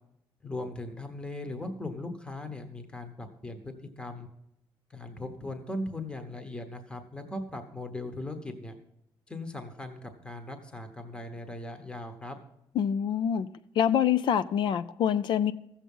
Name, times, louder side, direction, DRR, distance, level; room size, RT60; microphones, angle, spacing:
voice 1, 0.4-4.3 4.9-8.8 9.3-12.4, left 2 dB, 10° left, 6 dB, 1.1 m, -39 dB
voice 2, 12.8-13.5 13.8-15.5, left 9 dB, 60° left, 13 dB, 0.5 m, -25 dB
14.5 x 7.3 x 5.4 m, 0.80 s
cardioid pair, 130°, 9 cm